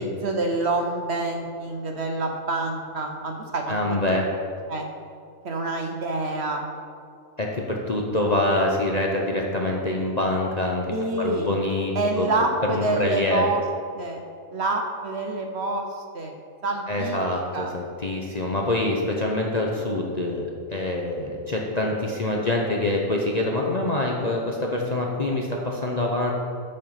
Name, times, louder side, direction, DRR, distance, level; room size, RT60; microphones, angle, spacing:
voice 1, 0.0-4.2 4.7-4.9 5.4-6.6 10.9-11.5 11.9-13.6 13.9-14.2 14.5-16.3 16.6-17.2 17.5-17.7, right 2 dB, 55° right, 3 dB, 0.9 m, -27 dB
voice 2, 3.7-4.3 7.4-10.9 11.2-12.3 12.7-13.4 16.9-26.3, left 2 dB, 40° left, -1 dB, 0.7 m, -25 dB
9.1 x 5.4 x 5.6 m, 2.4 s
omnidirectional pair, 1.6 m